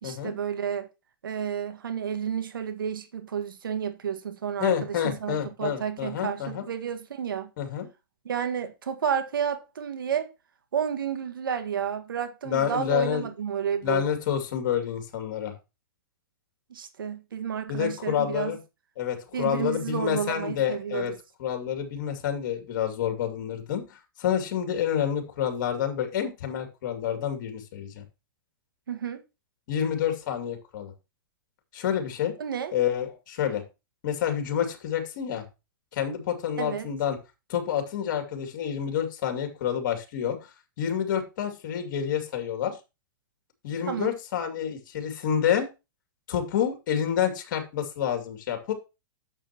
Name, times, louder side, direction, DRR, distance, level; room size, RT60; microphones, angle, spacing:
voice 1, 0.0-0.9 1.2-4.7 5.0-7.5 8.2-10.3 10.7-14.0 16.7-18.6 19.3-21.1 28.9-29.2 32.4-32.7 36.6-36.9 43.9-44.1, right 8 dB, 85° right, 1.7 m, -31 dB
voice 2, 4.6-6.6 7.6-7.9 12.4-13.3 13.8-15.5 17.7-18.6 19.0-21.1 21.4-28.0 29.7-30.9 31.7-32.3 32.7-33.6 34.0-35.4 35.9-37.2 37.5-40.4 40.8-42.8 43.6-45.7 46.3-48.7, left 9 dB, 65° left, 2.6 m, -28 dB
11.0 x 7.2 x 3.0 m
hypercardioid pair, 120°, 11 cm